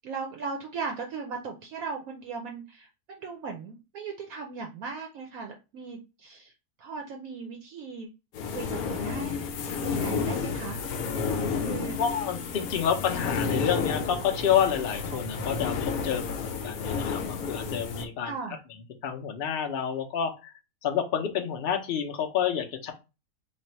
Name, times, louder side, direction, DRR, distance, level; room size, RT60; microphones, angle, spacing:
voice 1, 0.0-6.5 6.8-8.1 8.5-9.5 9.8-10.8 11.1-11.2 11.6-12.0 13.0-13.2 18.2-18.6, right 5 dB, 70° right, 2 dB, 1.0 m, -38 dB
sound 1, 8.3-18.1, left 5 dB, 70° left, 1.1 m, -31 dB
voice 2, 12.0-18.3 19.0-20.5 20.8-22.9, left 8 dB, 55° left, 3 dB, 0.6 m, -29 dB
3.3 x 2.4 x 4.2 m, 0.28 s
omnidirectional pair, 1.7 m